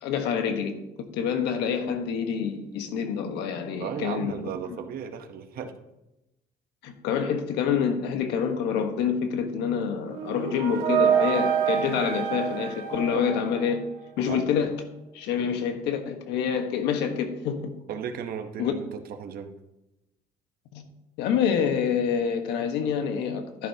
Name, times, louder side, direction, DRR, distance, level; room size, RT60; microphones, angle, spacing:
voice 1, 0.0-0.7 1.1-4.4 6.8-13.8 14.2-14.8 15.1-17.7 18.6-18.7 20.7-20.8 21.2-23.7, left 7 dB, 90° left, 6 dB, 1.3 m, -27 dB
voice 2, 3.8-5.7 13.1-13.2 14.3-14.5 17.9-19.5, right 7 dB, 60° right, 6 dB, 1.0 m, -35 dB
sound 1, 10.1-14.0, right 9 dB, 85° right, 1.4 m, -27 dB
11.0 x 10.5 x 2.8 m, 0.93 s
cardioid pair, 110°, 17 cm